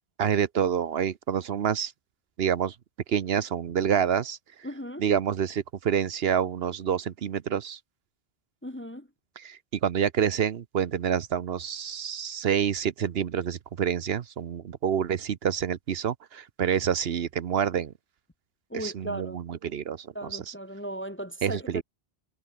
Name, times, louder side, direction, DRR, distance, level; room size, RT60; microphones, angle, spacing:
voice 1, 0.2-1.9 2.4-2.8 3.1-4.7 5.0-7.8 9.4-17.9 18.7-20.5 21.4-21.8, right 8 dB, 65° right, 1.0 m, -28 dB
voice 2, 4.6-5.1 8.6-9.1 18.7-19.4 20.1-21.8, right 1 dB, 10° left, 0.8 m, -36 dB
omnidirectional pair, 1.1 m